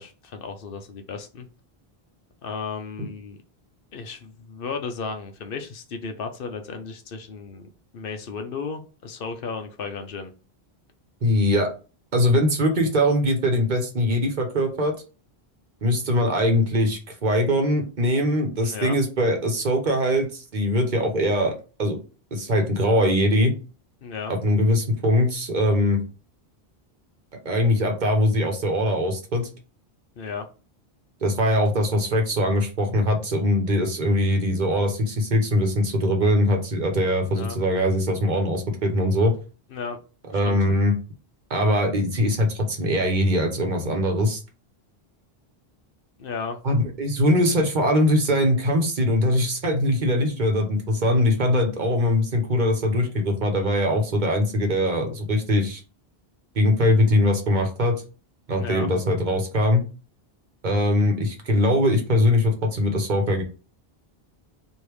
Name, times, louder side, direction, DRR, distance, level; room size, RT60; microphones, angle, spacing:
voice 1, 0.0-1.5 2.4-3.4 3.9-10.3 18.6-19.0 24.0-24.3 30.2-30.5 37.3-37.6 39.7-40.0 40.3-40.6 46.2-46.6 58.5-58.9, left 5 dB, 65° left, 6 dB, 0.8 m, -34 dB
voice 2, 11.2-11.7 12.1-14.9 15.8-21.5 21.8-22.0 22.3-23.5 24.3-26.0 27.4-29.5 31.2-39.3 40.3-40.9 41.5-44.4 46.6-55.8 56.6-58.0 58.5-59.8 60.6-63.4, left 1 dB, 50° right, 3 dB, 1.0 m, -22 dB
3.3 x 2.7 x 4.6 m, 0.35 s
omnidirectional pair, 1.0 m